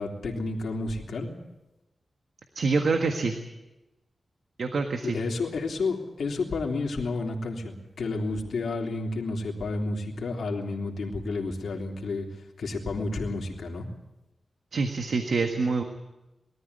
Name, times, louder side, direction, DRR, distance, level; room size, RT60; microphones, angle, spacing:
voice 1, 0.0-1.3 5.0-12.3 12.6-13.9, left 3 dB, 80° left, 1 dB, 3.3 m, -31 dB
voice 2, 2.6-3.3 4.6-5.2 14.7-15.8, right 4 dB, 75° right, 5 dB, 1.6 m, -26 dB
22.0 x 13.5 x 9.7 m, 1.0 s
wide cardioid pair, 75°, 0 cm